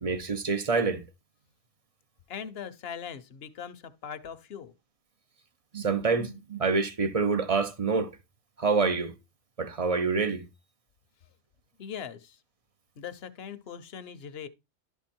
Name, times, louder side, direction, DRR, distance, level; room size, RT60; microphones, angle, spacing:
voice 1, 0.0-1.0 5.7-8.1 8.6-9.1 9.6-10.4, right 4 dB, 35° right, 0.6 m, -26 dB
voice 2, 2.3-4.7 11.8-12.4 13.0-14.5, left 7 dB, 60° left, 1.0 m, -40 dB
11.5 x 4.6 x 4.4 m
omnidirectional pair, 1.2 m